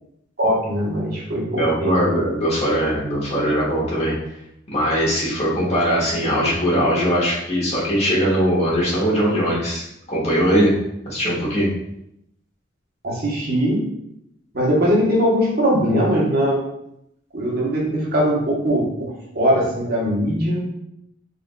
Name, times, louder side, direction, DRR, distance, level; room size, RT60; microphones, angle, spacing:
voice 1, 0.4-2.0 13.0-13.8 14.5-16.6 17.3-20.7, equal, 55° right, -4 dB, 1.1 m, -20 dB
voice 2, 1.6-4.1 4.7-10.7 11.0-11.7, equal, 35° left, -7 dB, 1.4 m, -20 dB
3.8 x 3.3 x 2.3 m, 0.79 s
head